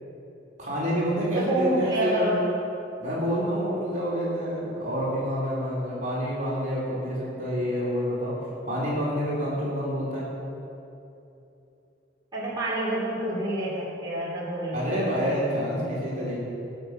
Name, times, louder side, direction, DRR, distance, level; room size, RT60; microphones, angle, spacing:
voice 1, 0.6-2.3 3.0-8.4 8.6-10.2 14.7-16.3, equal, 40° right, -7 dB, 3.1 m, -28 dB
voice 2, 1.3-2.4 12.3-14.9, right 1 dB, 20° right, -8 dB, 3.1 m, -28 dB
18.5 x 6.5 x 5.7 m, 2.9 s
head